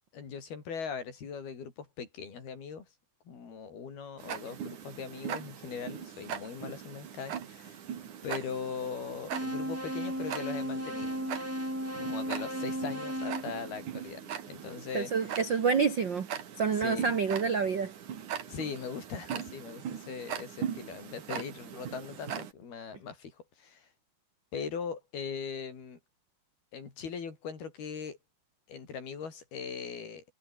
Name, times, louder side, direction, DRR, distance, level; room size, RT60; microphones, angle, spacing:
voice 1, 0.1-2.9 3.3-7.8 8.2-11.2 12.0-14.2 14.5-15.4 16.7-17.2 18.5-23.9 24.5-26.0 26.7-28.2 28.7-30.2, left 6 dB, 70° left, 6.5 m, -40 dB
Tick-tock, 4.2-22.5, right 8 dB, 55° right, 3.4 m, -41 dB
sound 1, 9.3-14.4, equal, 5° right, 6.9 m, -36 dB
voice 2, 14.9-16.3 16.6-17.9, right 5 dB, 80° right, 1.0 m, -28 dB
omnidirectional pair, 4.6 m